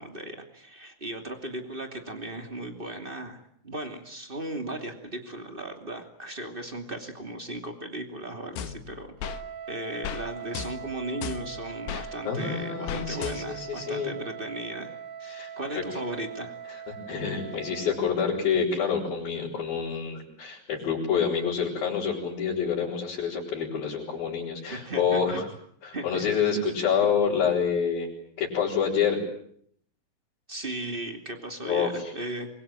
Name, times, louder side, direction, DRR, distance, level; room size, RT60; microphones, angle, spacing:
voice 1, 0.0-9.1 9.7-16.5 24.7-25.4 25.9-27.1 30.5-32.5, right 1 dB, 20° right, 5 dB, 1.3 m, -37 dB
sound 1, 8.6-9.4 10.0-10.2 10.5-12.1 12.9-13.7, left 10 dB, 75° left, 3.8 m, -36 dB
Wind instrument woodwind instrument, 9.2-18.1, right 8 dB, 65° right, 3.1 m, -41 dB
voice 2, 11.9-14.1 15.3-15.5 15.7-15.8 16.9-25.4 25.8-28.1 28.4-29.2 31.6-32.1, left 7 dB, 45° left, -5 dB, 7.4 m, -27 dB
27.0 x 22.5 x 9.0 m, 0.66 s
omnidirectional pair, 5.9 m